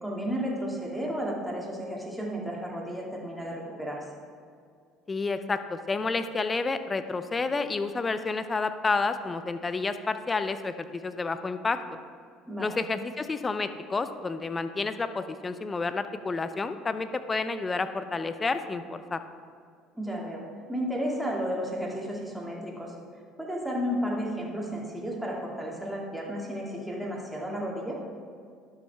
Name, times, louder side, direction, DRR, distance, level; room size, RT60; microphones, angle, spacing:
voice 1, 0.0-4.0 12.5-12.7 20.0-20.4 20.7-22.9 23.4-28.0, equal, 5° right, -3 dB, 2.3 m, -33 dB
voice 2, 5.1-11.8 12.6-19.2, left 3 dB, 25° left, 11 dB, 0.6 m, -30 dB
11.5 x 6.2 x 3.5 m, 2.2 s
hypercardioid pair, 65°, 0 cm